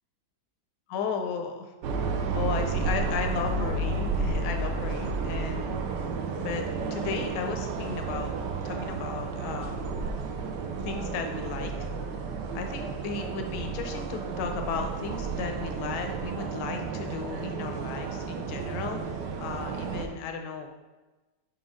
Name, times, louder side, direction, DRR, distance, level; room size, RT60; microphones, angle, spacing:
voice 1, 0.9-1.7 2.3-5.8 6.4-8.3 8.6-9.8 10.8-11.9 12.2-20.7, left 5 dB, 85° left, 4 dB, 1.2 m, -35 dB
sound 1, 1.8-20.1, right 4 dB, 85° right, 1.3 m, -32 dB
5.3 x 5.2 x 3.6 m, 1.2 s
omnidirectional pair, 1.8 m